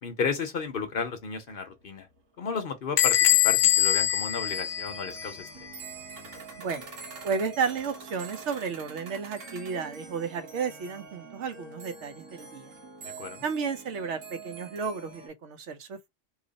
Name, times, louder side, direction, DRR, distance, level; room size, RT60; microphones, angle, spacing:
voice 1, 0.0-2.1 2.4-5.5 13.0-13.4, left 5 dB, 55° left, 0.8 m, -33 dB
sound 1, 0.7-0.8 0.9-3.0 3.3-3.4 3.8-3.9 4.3-15.3, right 5 dB, 90° right, 1.3 m, -45 dB
Bell / Door, 3.0-5.5, left 12 dB, 90° left, 1.0 m, -23 dB
voice 2, 6.6-6.9 7.2-12.7 13.4-16.1, right 5 dB, 70° right, 0.9 m, -32 dB
2.8 x 2.4 x 3.9 m
omnidirectional pair, 1.3 m